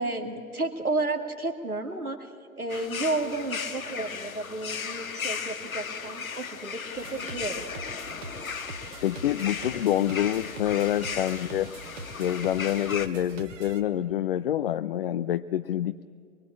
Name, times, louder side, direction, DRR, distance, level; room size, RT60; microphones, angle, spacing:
voice 1, 0.0-7.7, right 2 dB, 85° right, 5 dB, 2.2 m, -32 dB
sound 1, 2.7-13.1, left 6 dB, 70° left, 1.6 m, -36 dB
sound 2, 7.0-13.8, right 3 dB, 55° right, 2.4 m, -43 dB
voice 2, 9.0-11.7 12.2-16.0, left 11 dB, 45° left, 11 dB, 0.6 m, -27 dB
24.0 x 23.5 x 8.7 m, 2.3 s
figure-of-eight pair, 110°, 43 cm